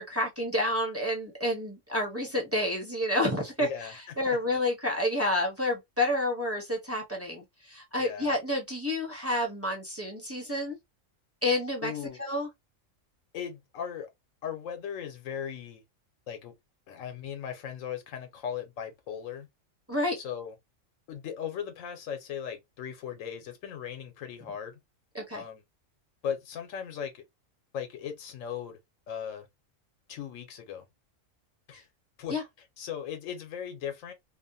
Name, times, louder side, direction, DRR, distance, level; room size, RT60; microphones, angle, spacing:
voice 1, 0.0-3.9 4.2-10.8 11.4-11.9 12.2-12.5 19.9-20.2 25.1-25.4 32.3-32.4, left 1 dB, 15° right, 0.8 m, -29 dB
voice 2, 3.6-4.4 8.0-8.3 11.8-12.2 13.3-14.1 14.4-15.8 16.3-16.5 16.9-19.5 20.2-20.5 21.1-24.8 25.3-25.6 26.2-27.2 27.7-28.8 29.1-29.5 30.1-30.8 31.7-31.9 32.2-32.4 32.8-34.1, left 8 dB, 80° left, 1.1 m, -38 dB
2.9 x 2.1 x 2.5 m
omnidirectional pair, 1.4 m